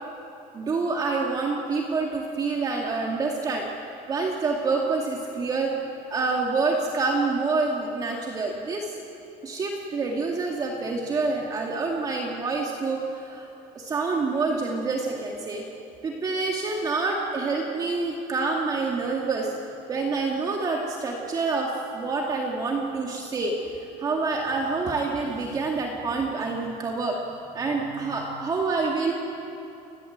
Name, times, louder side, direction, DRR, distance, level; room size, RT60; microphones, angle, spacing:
voice 1, 0.5-3.7 4.1-5.7 6.1-8.9 9.4-13.5 13.8-15.6 16.0-19.5 19.9-27.2 27.5-29.1, right 3 dB, 25° right, 0 dB, 2.1 m, -27 dB
29.5 x 18.0 x 8.0 m, 2.9 s
cardioid pair, 165°, 14 cm